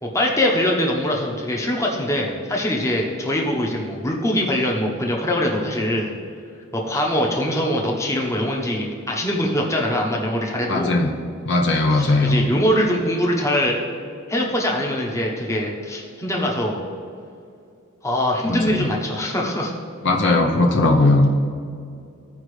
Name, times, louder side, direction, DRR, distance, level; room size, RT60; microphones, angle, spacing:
voice 1, 0.0-6.1 6.7-10.9 11.9-13.8 14.3-16.8 18.0-19.7, left 1 dB, 15° left, -1 dB, 1.0 m, -23 dB
voice 2, 10.7-11.1 11.5-12.5 18.5-18.9 20.0-21.3, left 2 dB, 60° left, 1 dB, 0.8 m, -18 dB
15.0 x 5.0 x 3.3 m, 2.4 s
head